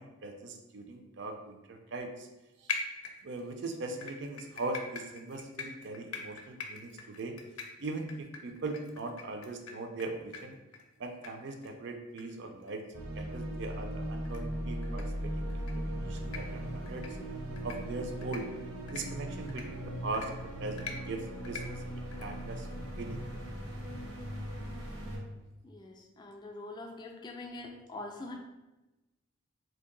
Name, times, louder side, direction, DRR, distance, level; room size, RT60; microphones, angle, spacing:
voice 1, 0.0-2.3 2.6-2.8 3.2-7.4 7.8-10.6 11.0-12.9 13.1-17.2 17.6-18.5 18.9-22.7 23.0-23.2, right 2 dB, 55° right, 5 dB, 0.4 m, -40 dB
sound 1, 2.7-3.5 4.0-10.0 10.3-10.4 10.7-10.8 11.2-11.3 11.6-11.7 12.2-12.3 12.6-12.7 13.2-13.3 14.2-14.4 14.8-15.0 15.5-15.7 16.2-16.4 16.9-17.1 17.6-17.8 18.2-18.4 18.9-19.0 19.5-19.6 20.1-20.3 20.8-20.9 21.4-21.6 22.1-22.3, left 6 dB, 85° left, 0.5 m, -41 dB
sound 2, 12.9-25.2, right 1 dB, 80° right, 0.8 m, -38 dB
voice 2, 25.6-28.3, left 2 dB, 20° left, 1 dB, 0.3 m, -44 dB
2.7 x 2.5 x 3.8 m, 1.1 s
head